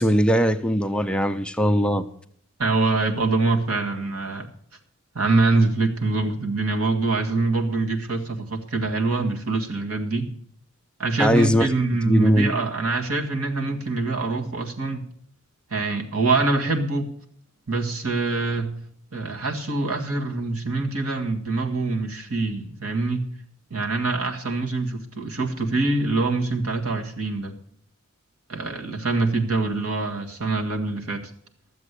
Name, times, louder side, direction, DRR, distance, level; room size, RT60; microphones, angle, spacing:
voice 1, 0.0-2.1 11.2-11.7 12.0-12.5, equal, 5° left, 8 dB, 0.4 m, -20 dB
voice 2, 2.6-4.5 5.2-10.3 11.0-15.0 15.7-17.1 17.7-18.7 19.1-23.2 23.7-27.5 28.5-31.2, right 3 dB, 85° right, 3 dB, 1.8 m, -24 dB
12.5 x 7.6 x 8.2 m, 0.63 s
head